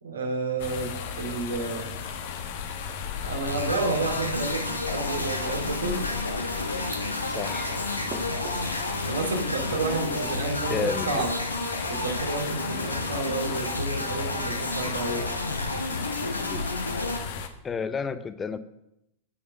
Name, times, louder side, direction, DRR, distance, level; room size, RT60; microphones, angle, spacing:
voice 1, 0.0-1.9 3.2-6.0 9.0-11.3 11.9-15.2, right 3 dB, 70° right, 2 dB, 2.4 m, -31 dB
sound 1, 0.6-17.5, left 7 dB, 55° left, 1.1 m, -35 dB
sound 2, 3.5-17.2, left 2 dB, 85° left, 1.2 m, -31 dB
sound 3, 4.5-10.6, right 5 dB, 30° right, 1.4 m, -49 dB
voice 2, 7.3-7.7 10.7-11.2 16.4-16.7 17.6-18.6, left 5 dB, 20° left, 12 dB, 0.6 m, -31 dB
15.0 x 5.3 x 6.4 m, 0.82 s
figure-of-eight pair, 90°, 0 cm